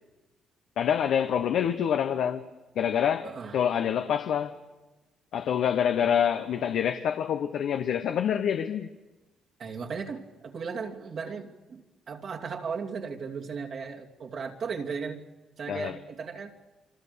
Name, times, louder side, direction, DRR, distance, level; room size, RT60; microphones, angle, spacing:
voice 1, 0.8-2.4 2.7-4.6 5.3-8.9 15.7-16.0, left 8 dB, 70° left, 1.0 m, -26 dB
voice 2, 3.2-3.6 9.6-15.2 15.6-16.5, right 5 dB, 55° right, 2.7 m, -36 dB
28.0 x 24.5 x 6.9 m
cardioid pair, 90°, 0 cm